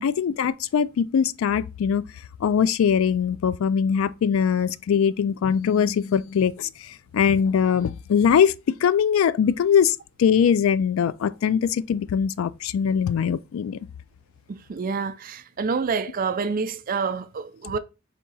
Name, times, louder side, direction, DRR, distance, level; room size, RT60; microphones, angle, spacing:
voice 1, 0.0-2.0 2.4-6.7 7.1-13.8, left 7 dB, 85° left, 0.3 m, -21 dB
voice 2, 14.5-17.8, right 5 dB, 45° right, 0.4 m, -28 dB
3.6 x 2.8 x 4.0 m
head